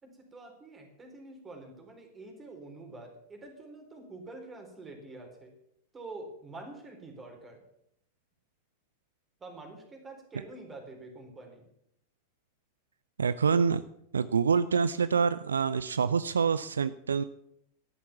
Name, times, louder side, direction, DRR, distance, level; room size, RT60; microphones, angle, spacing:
voice 1, 0.0-5.5 5.9-7.6 9.4-11.7, right 2 dB, 20° right, 4 dB, 4.0 m, -47 dB
voice 2, 13.2-13.8 14.1-17.2, right 6 dB, 70° right, 15 dB, 0.4 m, -26 dB
13.0 x 11.0 x 7.1 m, 0.76 s
figure-of-eight pair, 90°, 0 cm